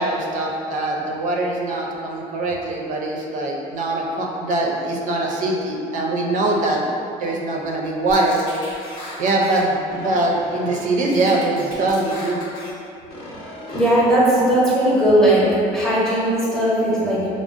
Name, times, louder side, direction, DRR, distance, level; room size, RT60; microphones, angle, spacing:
voice 1, 0.0-6.9 7.2-8.4 9.2-12.4, right 2 dB, 55° right, -1 dB, 0.5 m, -22 dB
sound 1, 8.1-9.6 9.9-10.9 11.1-12.7 13.1-14.0, left 1 dB, 75° left, 1.0 m, -37 dB
voice 2, 13.7-15.4 15.7-17.3, right 1 dB, 5° left, -8 dB, 0.8 m, -17 dB
4.8 x 2.0 x 2.5 m, 2.6 s
cardioid pair, 150°, 16 cm